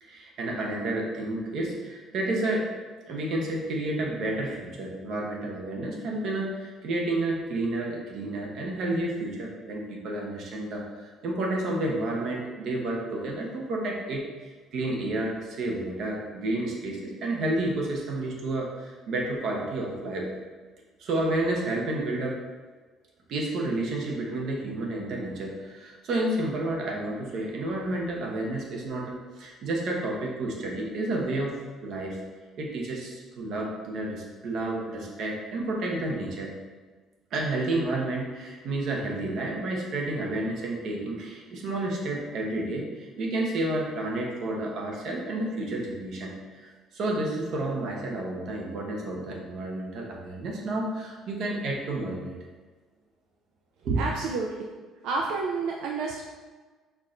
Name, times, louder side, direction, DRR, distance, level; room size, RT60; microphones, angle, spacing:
voice 1, 0.0-2.7 3.1-14.2 14.7-20.3 21.0-22.4 23.3-32.2 32.6-36.5 37.3-52.4 53.8-54.0, right 2 dB, 45° right, -1 dB, 0.8 m, -30 dB
voice 2, 54.0-54.6 55.0-56.2, right 4 dB, 70° right, -1 dB, 0.4 m, -29 dB
4.5 x 2.5 x 4.3 m, 1.4 s
cardioid pair, 180°, 0 cm